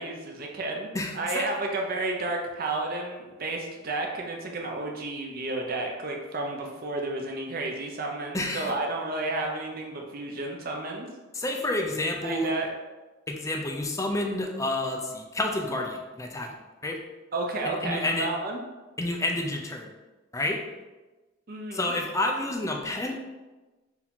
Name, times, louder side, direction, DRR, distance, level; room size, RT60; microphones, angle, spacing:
voice 1, 0.0-0.9 1.1-11.1 12.2-12.7 17.3-18.6 21.5-21.9, right 2 dB, 50° right, 1 dB, 0.6 m, -32 dB
voice 2, 0.9-1.5 8.3-8.7 11.3-12.5 13.3-16.5 16.8-17.0 17.6-18.3 19.0-19.9 20.3-20.6 21.7-23.1, left 1 dB, 15° left, 1 dB, 0.5 m, -29 dB
4.7 x 2.7 x 3.6 m, 1.2 s
head